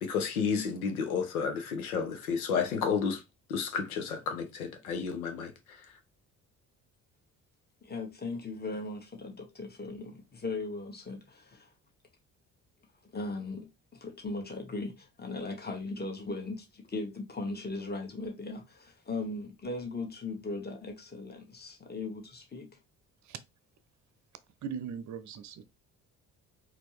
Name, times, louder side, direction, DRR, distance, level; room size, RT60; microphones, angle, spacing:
voice 1, 0.0-3.2 3.5-5.8, left 6 dB, 85° left, 0.8 m, -31 dB
voice 2, 7.8-11.7 13.0-22.8, left 3 dB, 25° left, 1.4 m, -38 dB
voice 3, 24.6-25.6, right 7 dB, 40° right, 0.7 m, -39 dB
4.2 x 2.8 x 3.2 m
hypercardioid pair, 45°, 42 cm